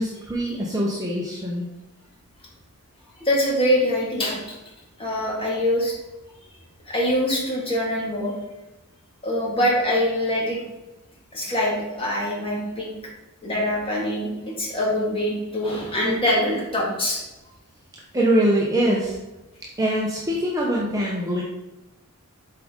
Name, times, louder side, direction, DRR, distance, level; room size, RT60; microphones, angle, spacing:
voice 1, 0.0-1.7 18.1-19.2 19.8-21.4, right 1 dB, 15° right, -4 dB, 0.8 m, -23 dB
voice 2, 3.2-4.6 5.0-6.0 6.9-8.3 9.2-10.6 11.3-12.9 13.4-17.2, left 1 dB, 25° left, -4 dB, 2.0 m, -24 dB
7.7 x 4.9 x 3.7 m, 1.0 s
head